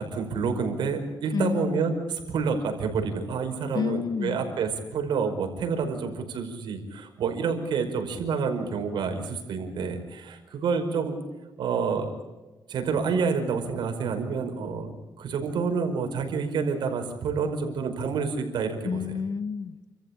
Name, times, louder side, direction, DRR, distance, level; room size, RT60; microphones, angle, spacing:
voice 1, 0.0-11.2 11.6-12.1 12.7-14.9 15.2-19.0, right 5 dB, 80° right, 4 dB, 5.2 m, -28 dB
voice 2, 1.3-1.8 3.7-4.4 18.8-19.9, left 6 dB, 60° left, 12 dB, 1.6 m, -29 dB
29.5 x 14.5 x 8.8 m, 1.2 s
cardioid pair, 110°, 8 cm